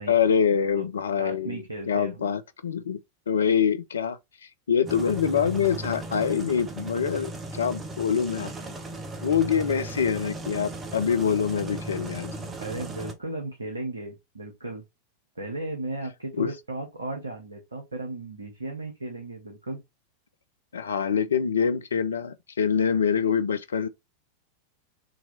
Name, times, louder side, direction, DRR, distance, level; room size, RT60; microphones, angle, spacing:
voice 1, 0.1-4.2 4.7-8.5 9.2-12.5 16.4-16.5 20.7-23.9, left 7 dB, 70° left, 0.5 m, -25 dB
voice 2, 1.2-2.2 9.7-9.8 12.6-14.8 15.3-19.8, right 2 dB, 80° right, 0.9 m, -35 dB
sound 1, 4.9-13.1, right 2 dB, 20° right, 0.9 m, -37 dB
3.9 x 2.9 x 3.9 m
figure-of-eight pair, 90°, 0 cm